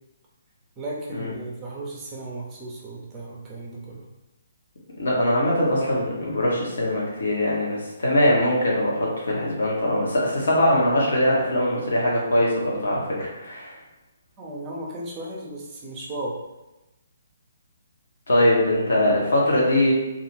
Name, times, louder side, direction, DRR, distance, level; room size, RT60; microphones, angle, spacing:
voice 1, 0.8-4.1 14.4-16.4 18.8-19.2, right 1 dB, 20° right, -3 dB, 0.6 m, -35 dB
voice 2, 5.0-13.7 18.3-19.9, left 1 dB, 60° left, -4 dB, 0.9 m, -22 dB
2.4 x 2.3 x 3.1 m, 1.0 s
figure-of-eight pair, 130°, 0 cm